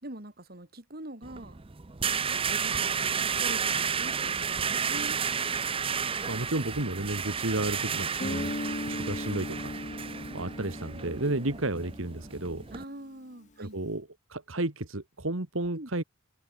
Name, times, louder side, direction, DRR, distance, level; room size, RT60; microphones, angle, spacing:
voice 1, 0.0-1.6 2.3-5.2 12.7-13.8 15.7-15.9, right 1 dB, 45° right, 4.0 m, -44 dB
sound 1, 1.2-12.8, right 6 dB, 25° right, 0.7 m, -32 dB
voice 2, 6.3-8.5 8.9-9.7 10.3-12.7 13.6-16.0, right 2 dB, 70° right, 2.1 m, -32 dB
Guitar, 8.2-12.8, left 1 dB, 35° left, 1.4 m, -38 dB
head